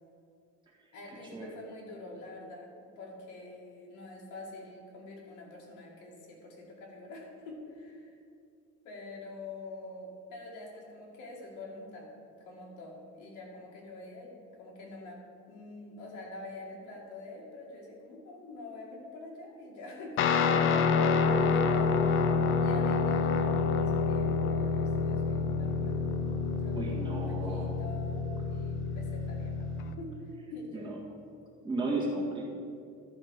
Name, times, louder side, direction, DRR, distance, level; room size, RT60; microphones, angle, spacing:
voice 1, 0.9-8.2 8.8-12.1 12.4-22.2 22.6-26.0 26.6-30.9, left 2 dB, 70° left, -2 dB, 2.3 m, -46 dB
Guitar, 20.2-29.9, left 5 dB, 40° left, 0.6 m, -28 dB
voice 2, 26.7-27.7 30.7-31.0 31.6-32.5, right 2 dB, 15° right, -5 dB, 1.7 m, -34 dB
12.0 x 5.1 x 6.5 m, 2.5 s
cardioid pair, 175°, 31 cm